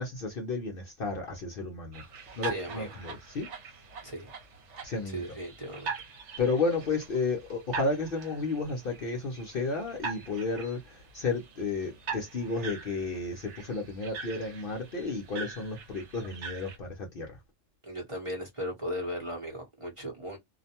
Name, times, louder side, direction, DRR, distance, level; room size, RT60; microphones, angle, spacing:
voice 1, 0.0-2.0 2.4-3.5 4.8-5.2 6.4-17.4, left 3 dB, 55° left, 0.7 m, -32 dB
sound 1, 1.9-16.8, right 5 dB, 65° right, 1.1 m, -43 dB
voice 2, 2.4-2.9 4.0-4.3 5.1-5.9 17.8-20.4, equal, 30° right, 0.9 m, -37 dB
2.5 x 2.1 x 2.7 m
omnidirectional pair, 1.3 m